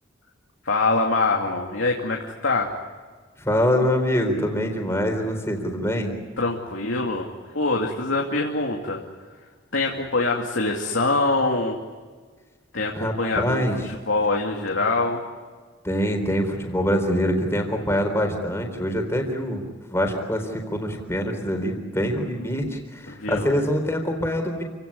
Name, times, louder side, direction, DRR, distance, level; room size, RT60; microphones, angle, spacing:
voice 1, 0.6-2.7 6.4-7.3 7.5-9.0 9.7-11.8 12.7-15.2 23.1-23.5, left 3 dB, 80° left, 0 dB, 2.5 m, -24 dB
voice 2, 3.4-6.1 12.9-13.8 15.8-19.6 19.9-24.6, equal, 15° left, 3 dB, 4.0 m, -24 dB
28.5 x 17.5 x 9.9 m, 1.5 s
head